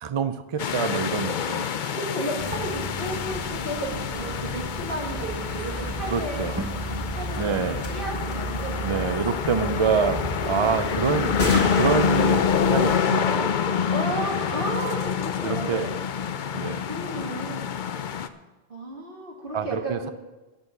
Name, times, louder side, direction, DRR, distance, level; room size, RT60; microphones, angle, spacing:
voice 1, 0.0-1.7 6.1-6.6 7.4-7.9 8.8-11.3 11.7-13.6 13.8-13.9 15.4-15.9 16.5-16.9 19.5-20.1, right 6 dB, 45° right, 12 dB, 0.4 m, -26 dB
sound 1, 0.6-18.3, left 7 dB, 55° left, 0.7 m, -27 dB
sound 2, 1.4-4.1 6.7-6.8 7.3-7.4 7.8-7.9 8.2-8.8 10.1-10.2 11.4-14.9, left 2 dB, 80° left, 2.3 m, -35 dB
voice 2, 1.9-6.6 7.1-10.1 10.9-11.1 13.9-15.9 16.9-17.7 18.7-20.1, right 1 dB, 60° right, -1 dB, 2.5 m, -34 dB
sound 3, 2.4-13.0, right 3 dB, 15° right, 0.8 m, -35 dB
10.5 x 6.8 x 9.2 m, 1.1 s
omnidirectional pair, 1.0 m